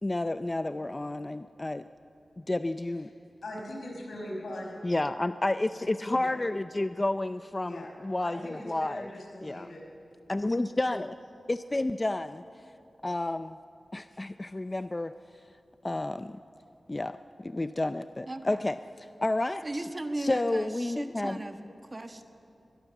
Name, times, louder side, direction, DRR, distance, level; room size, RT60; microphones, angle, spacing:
voice 1, 0.0-1.9 2.5-3.1 4.8-9.1 9.4-9.7 10.3-11.2 11.5-12.4 13.0-13.6 13.9-15.1 15.8-16.4 16.9-17.2 17.4-19.8 20.2-21.5, left 2 dB, 25° left, 11 dB, 0.4 m, -30 dB
voice 2, 3.4-4.8 6.1-6.4 7.6-7.9 8.2-9.8, left 1 dB, 85° left, -1 dB, 5.5 m, -40 dB
voice 3, 18.3-18.6 19.6-22.2, right 1 dB, 30° right, 6 dB, 1.4 m, -37 dB
22.5 x 20.5 x 7.0 m, 2.7 s
wide cardioid pair, 105°, 0 cm